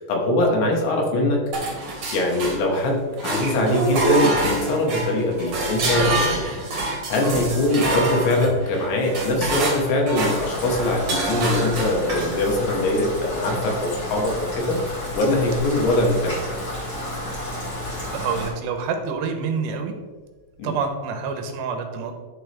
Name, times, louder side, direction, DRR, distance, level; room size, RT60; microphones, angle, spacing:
voice 1, 0.0-1.8 2.1-6.5 7.1-16.4 20.6-20.7, left 1 dB, 85° left, 0 dB, 3.7 m, -22 dB
sound 1, 1.5-2.9 3.2-12.6, right 2 dB, 55° right, 1.6 m, -26 dB
Rain, 10.2-18.5, left 1 dB, 35° left, 1.7 m, -31 dB
voice 2, 18.1-20.0 20.6-22.1, right 5 dB, 80° right, 5 dB, 2.9 m, -27 dB
12.0 x 4.2 x 3.4 m, 1.4 s
omnidirectional pair, 5.0 m